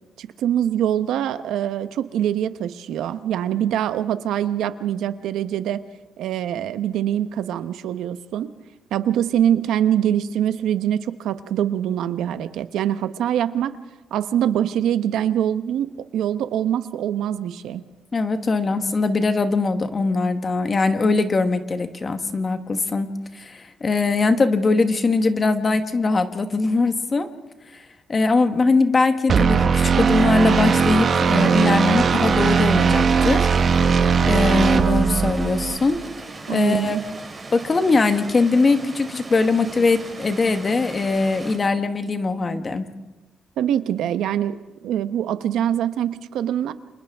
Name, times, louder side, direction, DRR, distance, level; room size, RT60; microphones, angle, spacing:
voice 1, 0.2-5.8 6.2-8.5 8.9-13.8 14.1-17.8 36.5-37.0 43.6-46.7, right 10 dB, 80° right, 11 dB, 0.9 m, -24 dB
voice 2, 18.1-23.1 23.3-27.3 27.7-27.8 28.1-33.5 34.3-36.0 36.5-37.0 37.5-42.8, left 3 dB, 25° left, 8 dB, 1.2 m, -21 dB
sound 1, 29.3-35.8, right 6 dB, 35° right, 1.2 m, -18 dB
Rainy river in the forest, 30.0-41.6, right 3 dB, 20° right, 2.7 m, -39 dB
29.5 x 27.0 x 3.5 m, 1.1 s
cardioid pair, 170°, 0 cm